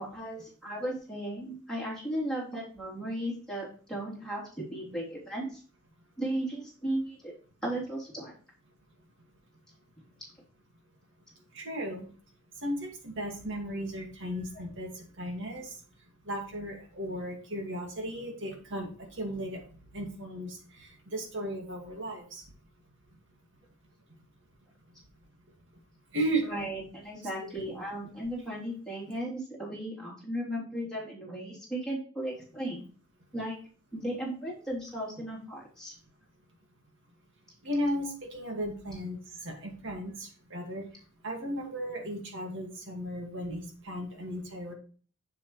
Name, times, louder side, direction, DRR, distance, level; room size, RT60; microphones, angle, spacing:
voice 1, 0.0-5.6 6.2-7.3 7.6-8.3 14.5-14.6 26.4-32.8 33.3-33.6 33.9-35.9, right 1 dB, 5° left, -6 dB, 3.4 m, -36 dB
voice 2, 11.5-12.1 12.6-15.8 16.3-19.6 19.9-22.4 26.1-26.4 37.6-40.8 41.2-44.7, right 1 dB, 55° right, 2 dB, 2.2 m, -35 dB
7.4 x 7.2 x 3.2 m, 0.40 s
head